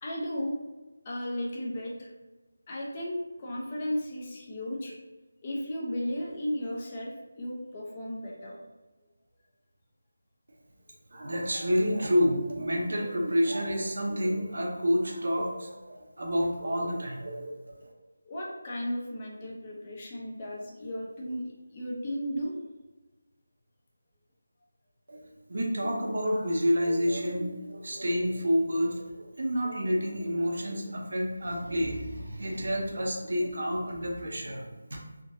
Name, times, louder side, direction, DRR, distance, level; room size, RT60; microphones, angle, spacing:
voice 1, 0.0-0.6 1.0-2.1 2.7-4.9 5.4-8.6 18.2-21.4 21.7-22.5, equal, 30° left, -3 dB, 0.7 m, -34 dB
voice 2, 11.1-17.9 25.1-25.2 25.5-35.0, equal, 65° right, -1 dB, 0.8 m, -29 dB
3.6 x 2.7 x 2.7 m, 1.2 s
figure-of-eight pair, 165°, 0 cm